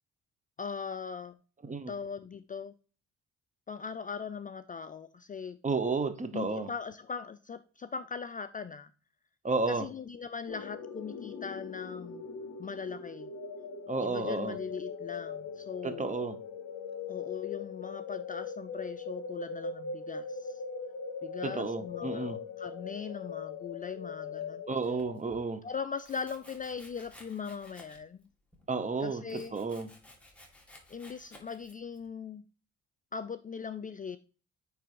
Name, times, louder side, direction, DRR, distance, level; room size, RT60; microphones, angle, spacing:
voice 1, 0.6-1.4 1.9-2.7 3.7-5.6 6.3-8.9 9.7-12.3 12.6-13.3 14.0-16.1 17.1-20.6 21.2-24.6 25.6-28.3 29.0-29.6 30.9-32.4 33.1-34.2, left 6 dB, 30° left, 0.4 m, -40 dB
voice 2, 5.6-6.7 9.4-9.9 13.9-14.6 15.8-16.4 21.4-22.4 24.7-25.7 28.7-29.9, right 4 dB, 25° right, 0.8 m, -32 dB
sound 1, 10.5-25.2, left 5 dB, 65° left, 0.9 m, -40 dB
Domestic sounds home sounds, 24.8-25.4 26.0-28.2 28.5-32.1, left 1 dB, 5° left, 1.9 m, -56 dB
9.3 x 3.4 x 3.0 m
cardioid pair, 90°, 30 cm